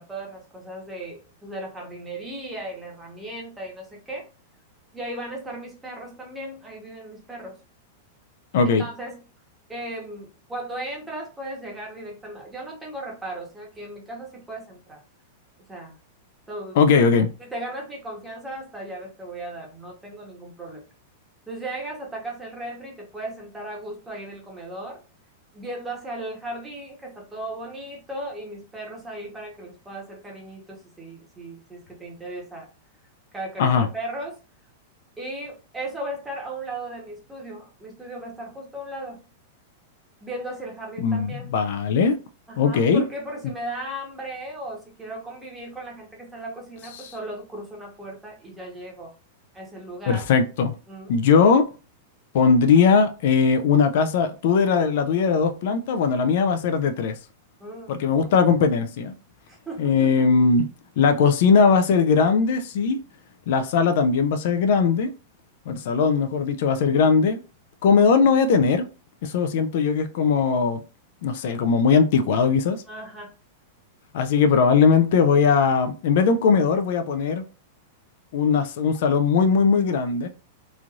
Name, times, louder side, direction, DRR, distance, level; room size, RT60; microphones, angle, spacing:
voice 1, 0.0-4.3 4.9-7.6 8.6-9.2 9.7-15.0 15.7-15.9 16.5-16.8 17.4-20.8 21.5-25.0 25.5-32.7 33.3-34.4 35.2-39.2 40.2-41.5 42.5-49.1 49.5-50.3 50.9-51.1 57.6-58.3 59.5-60.3 72.9-73.3, right 1 dB, 10° right, 1.0 m, -36 dB
voice 2, 16.8-17.3 33.6-33.9 41.0-42.2 42.6-43.0 43.4-43.5 47.0-47.1 50.1-50.7 51.1-51.7 52.3-57.2 57.9-59.1 59.8-60.7 61.0-63.0 63.5-65.1 65.7-67.4 67.8-68.9 69.2-70.8 71.2-72.8 74.1-77.4 78.3-80.3, left 5 dB, 60° left, 0.4 m, -19 dB
3.1 x 2.5 x 2.4 m
supercardioid pair, 150°, 0 cm